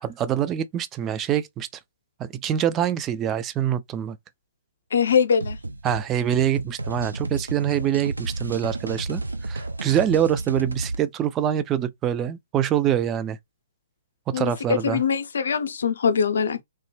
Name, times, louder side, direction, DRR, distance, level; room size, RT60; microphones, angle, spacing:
voice 1, 0.0-1.7 2.2-4.2 5.8-13.4 14.3-15.0, right 10 dB, 20° right, 0.4 m, -25 dB
voice 2, 4.9-5.6 14.3-14.5 14.8-16.6, left 6 dB, 65° left, 0.6 m, -22 dB
sound 1, 5.4-11.0, right 2 dB, 85° right, 0.5 m, -32 dB
3.1 x 2.1 x 3.1 m
figure-of-eight pair, 125°, 0 cm